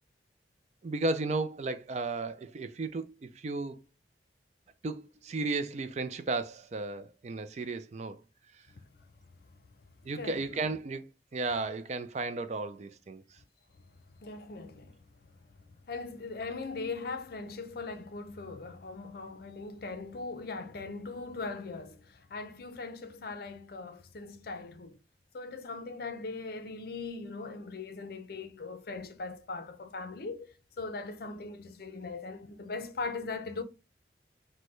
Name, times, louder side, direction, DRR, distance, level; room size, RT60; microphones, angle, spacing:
voice 1, 0.8-3.8 4.8-8.2 8.5-8.6 10.0-13.4, right 3 dB, 40° right, 0.4 m, -34 dB
voice 2, 10.1-10.7 14.2-15.3 15.8-25.0 25.3-33.6, left 3 dB, 55° left, 0.5 m, -40 dB
6.2 x 2.1 x 3.1 m
head